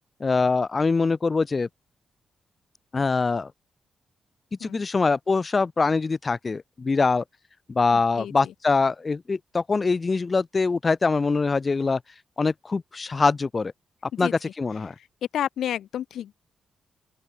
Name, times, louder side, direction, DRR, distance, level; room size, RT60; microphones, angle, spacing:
voice 1, 0.2-1.7 2.9-3.5 4.6-7.2 7.7-12.0 12.4-13.7 14.2-14.9, left 4 dB, 30° left, 1.1 m, -23 dB
voice 2, 7.9-8.3 14.1-14.3 15.3-16.3, left 10 dB, 85° left, 0.8 m, -30 dB
open air
cardioid pair, 105°, 0 cm